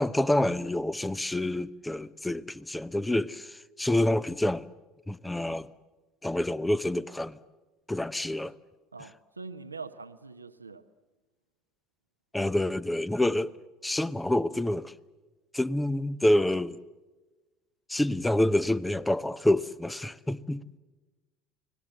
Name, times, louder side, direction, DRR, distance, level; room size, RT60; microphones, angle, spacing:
voice 1, 0.0-4.7 5.1-5.7 6.2-7.4 7.9-8.5 12.3-13.5 13.8-14.9 15.5-16.8 17.9-20.6, left 1 dB, 10° left, 0.8 m, -27 dB
voice 2, 8.9-10.8, right 4 dB, 90° right, 0.8 m, -43 dB
30.0 x 19.5 x 7.9 m
figure-of-eight pair, 65°, 0 cm